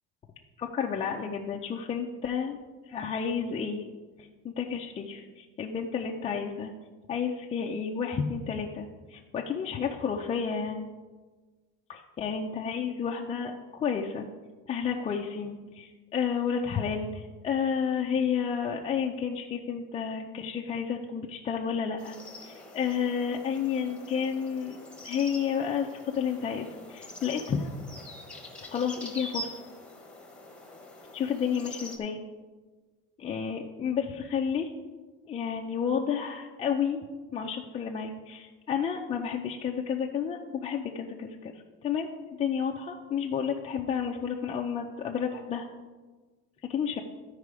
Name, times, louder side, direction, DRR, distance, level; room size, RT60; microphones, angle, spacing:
voice 1, 0.6-2.6 2.9-3.8 4.2-6.7 7.1-10.9 11.9-14.3 14.7-24.8 25.0-27.7 28.7-29.5 31.1-32.2 33.2-34.7 35.3-37.0 37.3-41.5 41.8-42.1 42.4-45.7 46.7-47.0, left 7 dB, 20° left, 0 dB, 0.4 m, -31 dB
sound 1, 22.0-32.0, left 1 dB, 5° left, 1.0 m, -45 dB
13.5 x 4.8 x 4.8 m, 1.3 s
cardioid pair, 165°, 31 cm